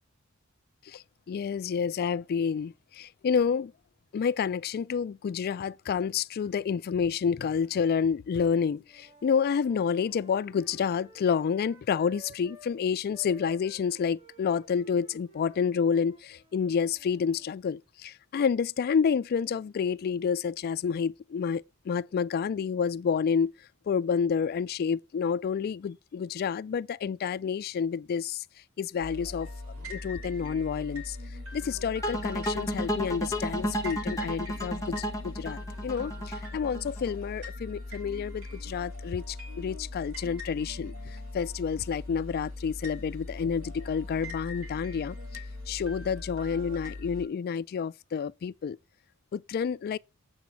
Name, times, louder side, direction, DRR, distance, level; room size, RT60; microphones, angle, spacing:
voice 1, 0.9-3.7 4.1-23.5 23.9-28.4 28.8-29.5 29.9-31.2 31.5-45.2 45.7-48.8 49.3-50.0, left 6 dB, 45° left, 0.3 m, -29 dB
Wind instrument woodwind instrument, 8.8-12.7 13.1-17.5, right 1 dB, 30° right, 2.6 m, -55 dB
sound 1, 29.0-47.3, left 2 dB, 90° right, 2.4 m, -40 dB
sound 2, 32.0-37.1, equal, 15° left, 1.0 m, -32 dB
7.9 x 4.0 x 5.7 m
head